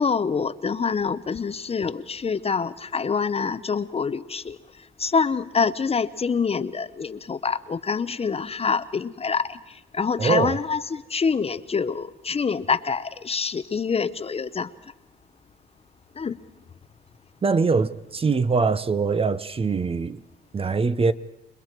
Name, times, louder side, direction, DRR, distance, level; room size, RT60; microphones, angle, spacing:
voice 1, 0.0-4.6 5.0-9.6 9.9-14.7 16.2-16.4, left 5 dB, 30° left, 0.7 m, -26 dB
voice 2, 10.2-10.6 17.4-20.2 20.5-21.1, right 4 dB, 30° right, 0.7 m, -23 dB
28.5 x 21.0 x 4.6 m
cardioid pair, 90°, 20 cm